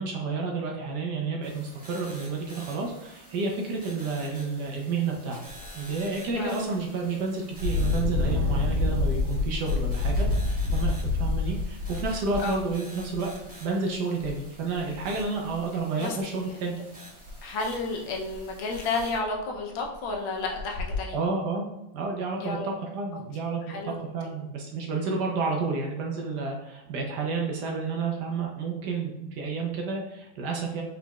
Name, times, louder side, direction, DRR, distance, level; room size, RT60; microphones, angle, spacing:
voice 1, 0.0-5.4 5.7-13.3 13.6-16.8 21.1-21.7 21.9-30.8, right 4 dB, 65° right, 0 dB, 1.1 m, -30 dB
sound 1, 1.4-19.2, equal, 5° right, 0.7 m, -49 dB
Engine, 5.5-5.7 6.2-6.3 7.5-13.3 14.2-14.3 14.7-15.5 17.3-17.4 17.8-17.9 18.3-18.4 18.7-19.2 19.8-19.9 20.5-21.0, left 3 dB, 85° right, 2.0 m, -27 dB
voice 2, 17.4-21.2 22.4-22.7 23.1-23.2 23.7-23.9, left 3 dB, 75° left, 1 dB, 1.4 m, -31 dB
4.9 x 3.9 x 2.3 m, 0.92 s
omnidirectional pair, 2.2 m